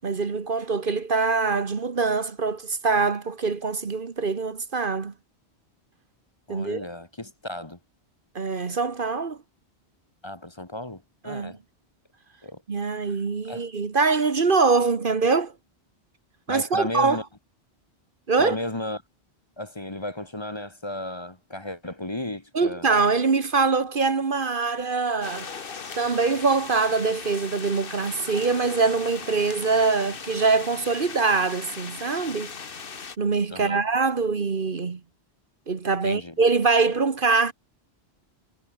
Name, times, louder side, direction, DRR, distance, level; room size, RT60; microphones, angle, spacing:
voice 1, 0.0-5.1 6.5-6.9 8.3-9.4 11.2-11.5 12.7-15.5 16.5-17.2 18.3-18.6 22.5-25.5 25.9-32.5 33.2-35.0 35.7-37.5, right 4 dB, 55° right, 1.5 m, -23 dB
voice 2, 6.5-7.8 10.2-11.6 12.4-13.2 13.4-13.7 16.5-17.2 18.4-19.0 19.6-22.9 33.5-33.8 36.0-36.4, left 1 dB, 25° left, 1.6 m, -34 dB
sound 1, 25.2-33.2, left 5 dB, 55° left, 1.5 m, -38 dB
omnidirectional pair, 1.1 m